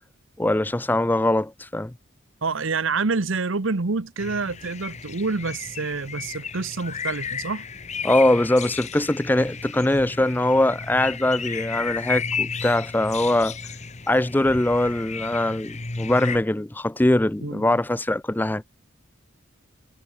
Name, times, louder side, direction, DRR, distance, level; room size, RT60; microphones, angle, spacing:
voice 1, 0.4-1.9 8.0-13.6 14.1-18.6, left 1 dB, 10° left, 0.4 m, -22 dB
voice 2, 2.4-7.7 17.4-17.7, right 4 dB, 80° right, 1.0 m, -27 dB
sound 1, 4.2-16.4, left 5 dB, 35° left, 1.6 m, -33 dB
head